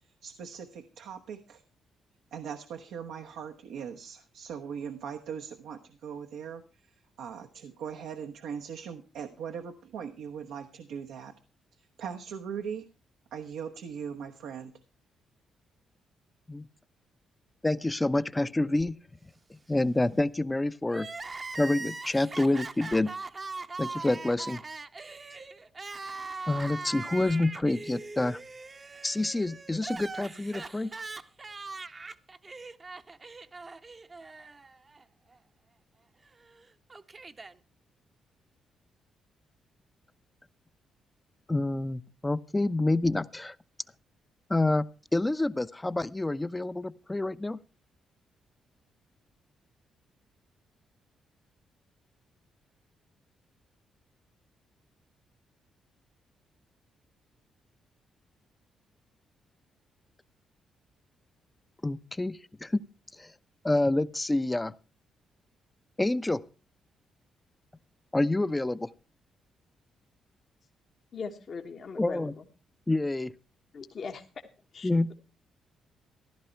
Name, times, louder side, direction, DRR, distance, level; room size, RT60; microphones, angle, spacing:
voice 1, 0.0-1.6 2.3-11.3 11.7-12.9 13.3-14.7, right 7 dB, 85° right, 4 dB, 1.1 m, -40 dB
voice 2, 17.6-18.9 19.7-21.1 21.5-23.1 23.8-24.6 26.5-28.4 29.0-30.9 41.5-43.6 44.5-44.9 45.1-47.6 61.8-62.8 63.2-63.3 63.6-64.7 66.0-66.4 68.1-68.9 72.0-72.3 72.9-73.3 74.8-75.1, left 2 dB, 15° left, 15 dB, 0.7 m, -27 dB
Crying sobbing, 20.9-35.0 35.3-35.4 36.4-37.5, right 3 dB, 35° right, 0.9 m, -41 dB
voice 3, 71.1-72.4 73.7-74.2 74.7-75.1, left 5 dB, 55° left, 4 dB, 1.5 m, -40 dB
15.0 x 11.5 x 4.5 m, 0.33 s
supercardioid pair, 65°, 0 cm